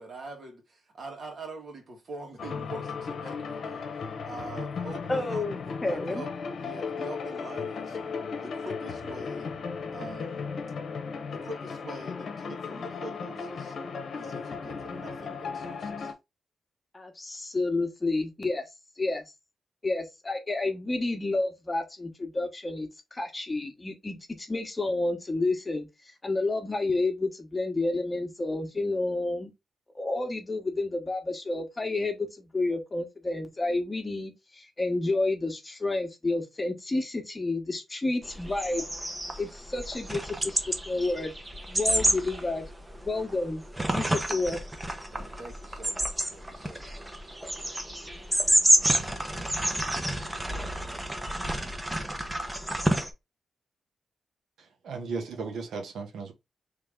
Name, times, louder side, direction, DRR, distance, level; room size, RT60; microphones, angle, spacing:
voice 1, 0.0-3.9 4.2-6.3 6.6-8.0 8.4-9.5 9.9-10.5 11.3-13.8 14.1-16.1 45.1-47.1, right 2 dB, 60° right, 1.8 m, -44 dB
sound 1, 2.4-16.1, left 5 dB, 70° left, 0.8 m, -36 dB
voice 2, 5.1-6.2 16.9-18.6 19.0-19.2 19.8-25.9 26.2-29.5 29.9-38.9 39.4-40.6 40.9-41.3 41.7-42.6 43.0-43.6 43.9-44.6, left 2 dB, 25° left, 1.1 m, -30 dB
sound 2, 38.2-53.1, right 1 dB, 15° right, 0.8 m, -29 dB
voice 3, 54.6-56.3, right 4 dB, 90° right, 0.8 m, -36 dB
3.3 x 3.3 x 3.6 m
cardioid pair, 75°, 0 cm